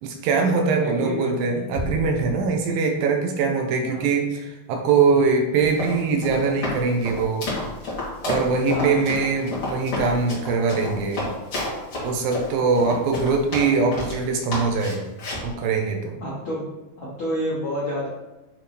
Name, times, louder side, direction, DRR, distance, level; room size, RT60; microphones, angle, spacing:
voice 1, 0.0-7.5 8.2-11.3 12.0-15.1 15.4-16.2, right 4 dB, 75° right, 3 dB, 2.4 m, -22 dB
voice 2, 0.8-1.6 3.8-4.0 8.6-9.0 16.2-16.7 17.0-18.1, equal, 70° left, -6 dB, 1.1 m, -29 dB
Bass drum, 1.7-3.2, right 1 dB, 60° right, 3.8 m, -34 dB
Run, 5.6-14.2 14.5-15.5, left 2 dB, 40° left, 2.8 m, -30 dB
9.2 x 3.7 x 3.4 m, 1.1 s
omnidirectional pair, 4.4 m